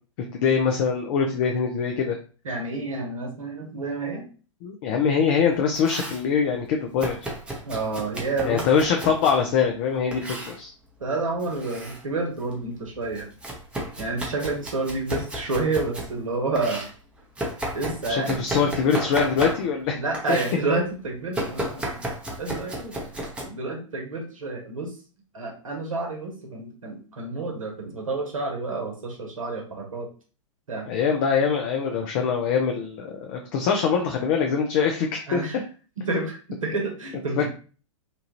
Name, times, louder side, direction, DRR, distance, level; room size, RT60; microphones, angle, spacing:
voice 1, 0.3-2.2 4.6-7.1 8.4-10.7 18.1-20.0 20.3-20.4 30.9-35.4 37.4-37.5, left 6 dB, 45° left, 3 dB, 0.5 m, -23 dB
voice 2, 2.4-4.3 7.6-8.6 9.0-9.1 11.0-13.3 14.0-16.9 17.7-18.7 19.9-22.1 22.4-23.0 23.5-24.9 25.3-30.1 30.7-30.9 35.3-35.6 36.0-37.5, right 3 dB, 85° right, 1 dB, 0.9 m, -29 dB
Domestic sounds home sounds, 5.5-6.3 7.0-9.4 10.1-10.6 11.4-12.0 12.4-16.1 16.5-19.9 20.1-20.6 21.3-23.4, right 1 dB, 5° right, 0.7 m, -33 dB
2.8 x 2.3 x 2.9 m, 0.38 s
figure-of-eight pair, 105°, 17 cm